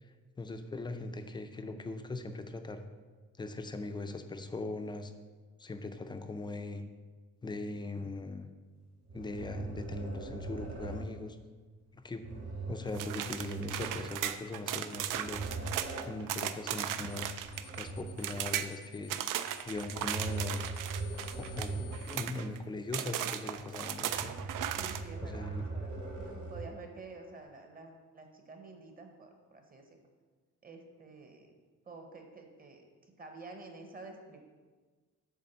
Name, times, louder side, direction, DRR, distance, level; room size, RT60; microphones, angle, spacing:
voice 1, 0.0-2.8 3.4-5.1 5.6-6.8 7.4-8.5 9.1-11.4 11.9-12.2 12.7-15.4 16.0-17.3 17.8-19.1 19.6-20.6 21.3-24.3 25.2-25.7, left 2 dB, 15° left, 8 dB, 0.4 m, -40 dB
sound 1, 9.0-11.1 12.2-14.3 14.9-16.2 17.0-18.5 19.7-22.2 22.6-22.7 24.0-26.8, right 3 dB, 65° right, 2.3 m, -41 dB
sound 2, 12.9-17.9 18.2-18.7 19.1-22.6 22.9-25.0, right 11 dB, 85° right, 0.5 m, -37 dB
sound 3, 17.1-17.3 17.5-22.3, left 12 dB, 65° left, 0.6 m, -55 dB
voice 2, 24.7-30.0 30.6-31.5 31.8-34.4, right 3 dB, 30° right, 4 dB, 0.9 m, -50 dB
8.5 x 3.5 x 6.7 m, 1.4 s
wide cardioid pair, 170°, 32 cm